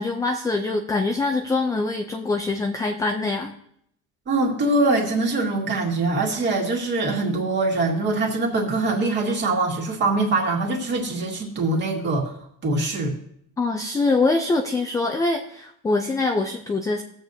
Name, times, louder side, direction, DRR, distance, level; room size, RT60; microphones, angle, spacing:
voice 1, 0.0-3.5 13.6-17.0, left 3 dB, 10° left, 2 dB, 0.3 m, -24 dB
voice 2, 4.3-12.3 12.6-13.1, right 2 dB, 35° right, 0 dB, 2.0 m, -23 dB
19.5 x 7.3 x 2.7 m, 0.72 s
cardioid pair, 165°, 33 cm